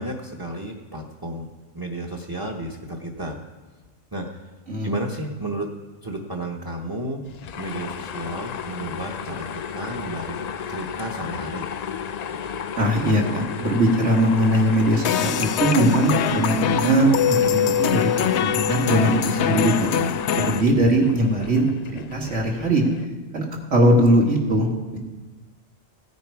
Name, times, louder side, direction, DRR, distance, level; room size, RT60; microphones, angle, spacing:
voice 1, 0.0-1.5 1.7-3.4 4.1-4.3 4.8-5.7 6.0-7.2 7.6-11.7 20.3-20.6, right 1 dB, 20° right, 2 dB, 1.0 m, -32 dB
sound 1, 7.2-23.1, left 7 dB, 90° left, 0.3 m, -33 dB
voice 2, 12.8-19.9 20.4-22.8 23.3-23.4 23.7-25.0, right 1 dB, 65° right, 0 dB, 2.4 m, -20 dB
sound 2, 15.0-20.6, left 9 dB, 65° left, 0.8 m, -23 dB
16.5 x 9.6 x 4.7 m, 1.2 s
omnidirectional pair, 1.3 m